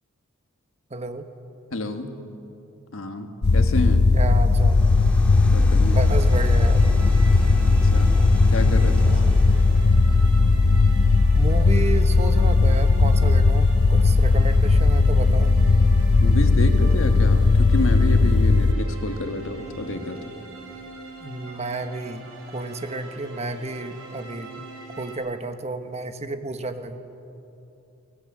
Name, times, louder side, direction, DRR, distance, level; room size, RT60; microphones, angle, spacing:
voice 1, 0.9-1.2 4.1-4.9 5.9-6.8 9.0-9.3 11.3-15.5 21.2-24.6 25.0-27.0, right 2 dB, 30° right, 8 dB, 1.2 m, -31 dB
voice 2, 1.7-2.2 2.9-4.1 5.5-6.1 7.6-8.2 8.5-9.2 16.2-20.3, left 2 dB, 70° left, 6 dB, 1.7 m, -29 dB
sound 1, 3.4-18.7, left 3 dB, 55° left, 0.6 m, -17 dB
sound 2, 4.3-10.1, equal, 5° left, 2.8 m, -32 dB
sound 3, 5.9-25.1, right 2 dB, 70° right, 4.9 m, -43 dB
23.5 x 18.5 x 7.5 m, 2.8 s
head